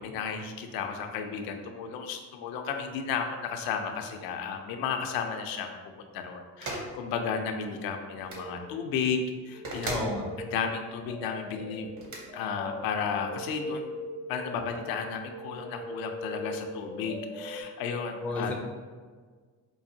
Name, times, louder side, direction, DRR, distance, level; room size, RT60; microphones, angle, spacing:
voice 1, 0.0-5.7 6.1-10.0 10.5-11.9 12.3-13.9 14.3-18.5, left 6 dB, 80° left, 5 dB, 0.5 m, -33 dB
sound 1, 6.6-6.9 8.2-8.5 9.6-10.1 12.0-12.2, right 2 dB, 55° right, 0.9 m, -35 dB
sound 2, 8.3-9.0 9.5-17.6, left 1 dB, 75° right, 0.7 m, -41 dB
voice 2, 9.9-10.3 18.2-18.5, left 2 dB, 5° left, -1 dB, 0.3 m, -31 dB
4.7 x 2.5 x 2.7 m, 1.5 s
cardioid pair, 140°, 35 cm